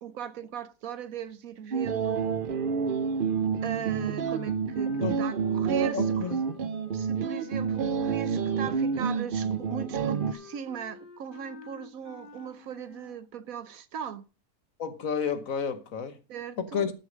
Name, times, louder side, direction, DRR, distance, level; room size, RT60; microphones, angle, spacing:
voice 1, 0.0-2.2 3.6-6.2 6.9-14.2 16.3-16.8, right 8 dB, 70° right, 1.2 m, -39 dB
sound 1, 1.7-10.3, right 6 dB, 50° right, 0.7 m, -28 dB
sound 2, 3.6-13.2, left 4 dB, 35° left, 1.7 m, -50 dB
voice 2, 5.9-6.5 14.8-16.2 16.6-16.9, left 6 dB, 65° left, 1.5 m, -31 dB
13.0 x 6.6 x 5.1 m
omnidirectional pair, 1.6 m